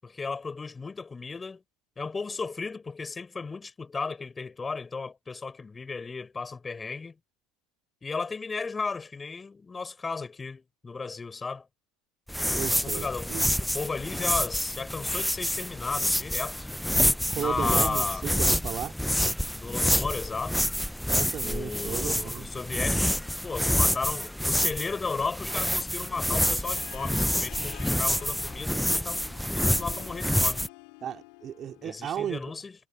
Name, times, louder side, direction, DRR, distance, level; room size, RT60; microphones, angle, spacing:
voice 1, 0.0-1.6 2.0-7.2 8.0-11.7 12.7-13.3 13.6-16.7 17.4-18.2 19.5-20.6 21.4-29.3 29.5-30.6 31.8-32.8, left 4 dB, 20° left, 7.8 m, -35 dB
sound 1, 12.3-30.7, equal, ahead, 0.8 m, -27 dB
voice 2, 12.6-13.5 17.3-18.9 21.1-22.5 31.0-32.5, right 10 dB, 45° right, 2.8 m, -35 dB
Harp, 26.6-32.1, left 34 dB, 65° left, 4.2 m, -48 dB
hypercardioid pair, 75°, 0 cm